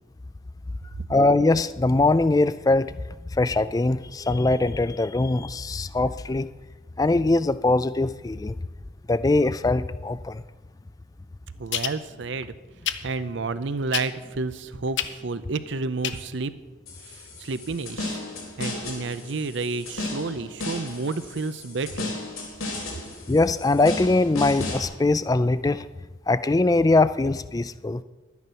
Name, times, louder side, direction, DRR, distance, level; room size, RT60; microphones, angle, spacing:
voice 1, 1.1-2.9 3.4-6.5 7.0-8.5 9.1-10.4 23.3-25.9 26.3-28.0, left 2 dB, 20° left, 15 dB, 0.3 m, -22 dB
voice 2, 11.6-12.5 13.0-16.5 17.0-18.2 18.6-22.1, right 3 dB, 60° right, 13 dB, 0.6 m, -30 dB
sound 1, 11.7-11.9 12.8-13.0 13.9-14.3 15.0-15.1 16.0-16.2 16.5-16.6, left 10 dB, 60° left, 0.7 m, -27 dB
sound 2, 16.9-24.9, left 2 dB, 90° left, 3.4 m, -35 dB
12.0 x 9.5 x 5.7 m, 1.2 s
head